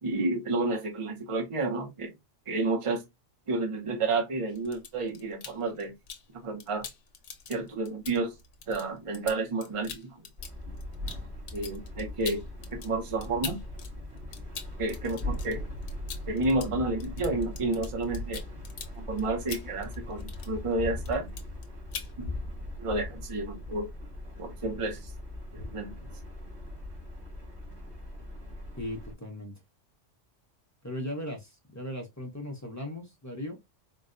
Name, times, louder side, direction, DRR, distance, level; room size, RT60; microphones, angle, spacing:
voice 1, 0.0-2.1 2.5-3.0 3.5-5.9 6.3-6.9 7.5-8.3 8.7-10.2 11.5-12.4 12.7-13.6 14.8-15.6 16.3-18.4 18.9-21.3 22.2-22.3 22.8-23.9 24.4-25.1 25.5-26.0, right 2 dB, 35° right, 0.7 m, -30 dB
sound 1, 4.5-6.3 6.6-13.9 14.2-20.7 21.0-21.6 21.9-22.1, left 6 dB, 85° left, 1.1 m, -43 dB
sound 2, 10.4-29.1, left 1 dB, 65° right, 2.0 m, -40 dB
voice 2, 28.8-29.5 30.8-33.6, left 1 dB, 20° left, 0.6 m, -37 dB
4.1 x 2.2 x 2.4 m
omnidirectional pair, 1.2 m